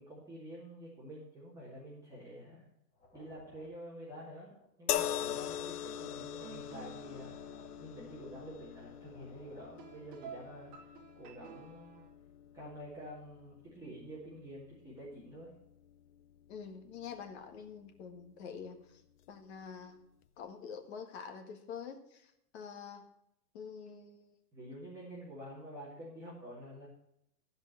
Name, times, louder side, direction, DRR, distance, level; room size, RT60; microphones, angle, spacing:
voice 1, 0.0-2.7 3.1-4.5 4.8-5.6 5.8-7.4 7.8-10.7 11.1-12.0 12.5-15.6 24.5-26.9, equal, 5° right, -9 dB, 2.5 m, -48 dB
sound 1, 2.9-4.7 4.9-8.7 8.9-10.3, left 2 dB, 20° left, 2.0 m, -62 dB
sound 2, 4.9-18.2 19.2-19.3, left 11 dB, 65° left, 0.8 m, -43 dB
sound 3, 6.1-12.1, right 8 dB, 30° right, 1.1 m, -54 dB
voice 2, 16.5-19.0 19.3-20.0 20.4-23.1 23.5-24.4, left 6 dB, 40° left, 6 dB, 1.7 m, -46 dB
14.0 x 5.3 x 7.6 m, 0.81 s
hypercardioid pair, 160°, 49 cm